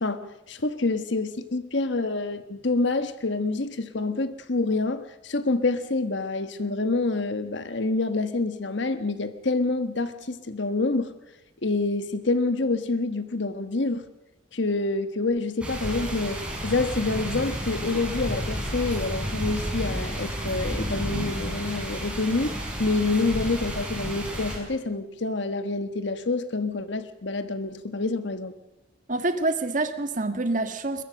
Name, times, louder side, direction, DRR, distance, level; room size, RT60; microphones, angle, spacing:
voice 1, 0.0-11.1 11.6-14.1 14.5-22.5 22.8-28.5, left 3 dB, 65° left, 10 dB, 1.3 m, -27 dB
sound 1, 15.6-24.6, equal, 5° right, 6.0 m, -31 dB
voice 2, 29.1-31.0, right 2 dB, 40° right, 9 dB, 1.7 m, -26 dB
22.0 x 21.5 x 6.4 m, 0.92 s
head